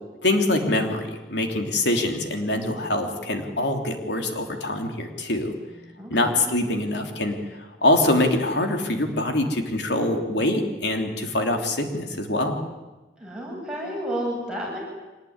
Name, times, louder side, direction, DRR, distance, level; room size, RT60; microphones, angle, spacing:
voice 1, 0.2-5.5 6.1-12.5, left 1 dB, 80° left, 4 dB, 3.1 m, -24 dB
voice 2, 5.9-6.4 13.2-14.8, equal, 5° right, -3 dB, 7.3 m, -31 dB
25.0 x 19.5 x 9.7 m, 1.1 s
head